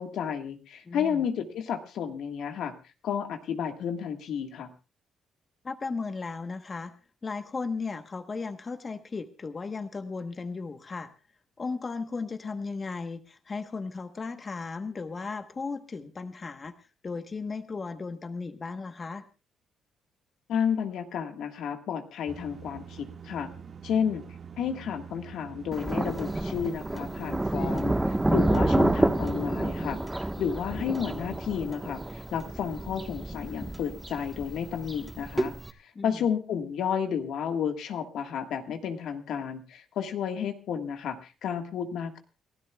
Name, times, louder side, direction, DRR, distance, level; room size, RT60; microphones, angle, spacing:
voice 1, 0.0-2.7 3.0-4.7 20.5-23.5 23.8-24.2 24.6-35.5 35.8-42.2, left 7 dB, 75° left, 6 dB, 1.5 m, -32 dB
voice 2, 0.9-1.2 5.6-6.9 7.2-11.1 11.6-19.2 35.9-36.2, left 4 dB, 35° left, 9 dB, 1.1 m, -36 dB
sound 1, 22.3-29.5, right 7 dB, 50° right, 1.7 m, -45 dB
Thunder, 25.7-35.7, right 1 dB, 10° right, 1.2 m, -29 dB
29.5 x 13.0 x 2.3 m, 0.31 s
cardioid pair, 90°, 0 cm